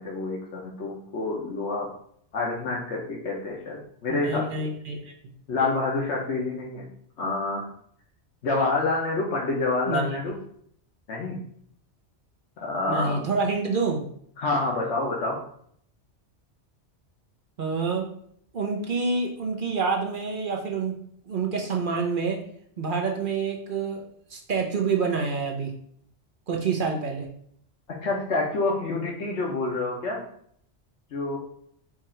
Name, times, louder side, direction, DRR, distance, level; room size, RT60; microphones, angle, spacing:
voice 1, 0.0-1.9 2.3-4.5 5.5-6.8 7.2-7.7 8.4-10.3 11.1-11.4 12.6-13.3 14.4-15.4 28.0-30.2 31.1-31.4, left 3 dB, 75° left, -3 dB, 1.1 m, -27 dB
voice 2, 4.2-5.1 9.9-10.1 12.9-14.0 17.6-18.1 18.5-21.0 21.3-22.4 22.8-24.0 24.3-25.7 26.5-27.3, right 4 dB, 50° right, 1 dB, 0.9 m, -27 dB
4.7 x 2.5 x 4.3 m, 0.63 s
omnidirectional pair, 1.2 m